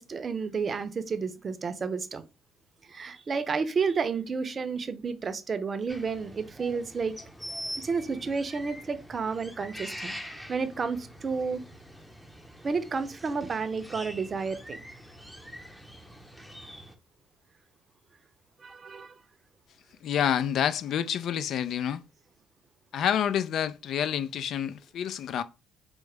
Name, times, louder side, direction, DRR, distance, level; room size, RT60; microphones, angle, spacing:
voice 1, 0.0-2.2 2.9-7.2 7.8-10.1 10.5-11.6 12.6-14.8 18.6-19.1, right 5 dB, 40° right, 0.6 m, -31 dB
sound 1, 5.9-16.9, equal, 5° left, 0.6 m, -44 dB
voice 2, 20.0-22.0 22.9-25.4, left 9 dB, 65° left, 0.3 m, -28 dB
4.7 x 2.0 x 3.3 m
supercardioid pair, 80°, 0 cm